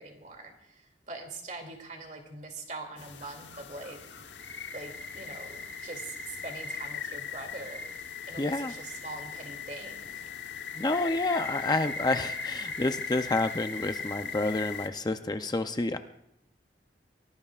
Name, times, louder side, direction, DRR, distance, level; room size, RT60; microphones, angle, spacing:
voice 1, 0.0-4.0 4.7-7.9 8.3-10.2, right 2 dB, 45° right, 3 dB, 2.6 m, -43 dB
sound 1, 3.0-14.9, left 5 dB, 85° left, 1.1 m, -39 dB
voice 2, 8.4-8.7 10.7-16.0, left 2 dB, 25° left, 8 dB, 0.6 m, -29 dB
24.0 x 17.5 x 2.4 m, 0.77 s
head